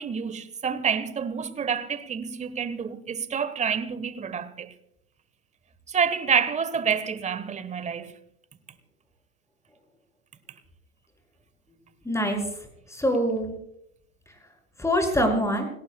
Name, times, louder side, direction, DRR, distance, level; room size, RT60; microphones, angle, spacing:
voice 1, 0.0-4.7 5.9-8.1, right 6 dB, 15° right, 1.3 m, -28 dB
voice 2, 12.0-13.5 14.8-15.7, equal, 5° left, 6.0 m, -25 dB
29.5 x 19.0 x 2.3 m
figure-of-eight pair, 85°, 43 cm